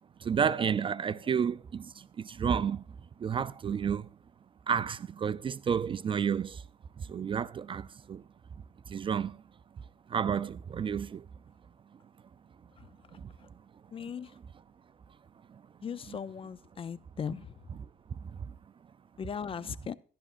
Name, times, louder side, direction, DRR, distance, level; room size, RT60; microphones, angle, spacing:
voice 1, 0.2-2.8 3.2-4.1 4.7-6.6 7.0-8.2 8.9-9.4 10.1-11.3 13.1-13.3 14.3-14.4 15.5-16.2 17.7-17.9 18.1-18.6 19.6-19.7, right 7 dB, 30° right, 0.4 m, -31 dB
voice 2, 13.9-14.3 15.8-17.4 19.2-20.0, left 7 dB, 30° left, 0.5 m, -38 dB
13.5 x 11.0 x 2.5 m
cardioid pair, 110°, 17 cm